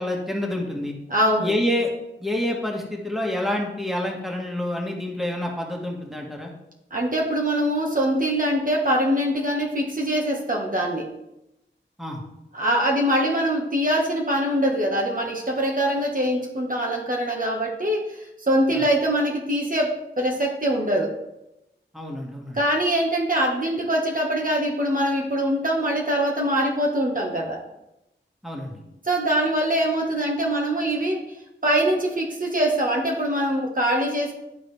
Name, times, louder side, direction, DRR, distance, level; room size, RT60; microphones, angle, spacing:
voice 1, 0.0-0.9 1.4-1.9 2.2-6.5 12.0-12.2 18.7-18.8 21.9-22.6 28.4-28.8, left 1 dB, ahead, 0 dB, 1.6 m, -27 dB
voice 2, 1.1-1.5 6.9-11.1 12.5-21.1 22.5-27.6 29.0-31.3 31.6-34.3, right 1 dB, 45° right, 0 dB, 1.2 m, -23 dB
11.0 x 3.9 x 3.3 m, 0.89 s
cardioid pair, 45°, 20 cm